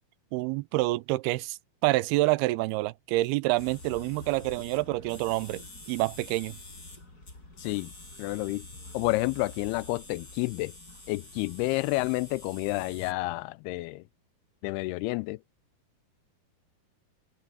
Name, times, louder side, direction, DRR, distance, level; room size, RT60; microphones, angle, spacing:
voice 1, 0.3-5.6 5.9-6.6, right 20 dB, 85° right, 2.6 m, -27 dB
sound 1, 3.6-13.1, left 2 dB, 25° left, 6.6 m, -47 dB
voice 2, 7.6-7.9 8.2-8.7 8.9-10.7 11.1-14.0 14.6-15.4, left 22 dB, 85° left, 2.5 m, -30 dB
open air
omnidirectional pair, 4.5 m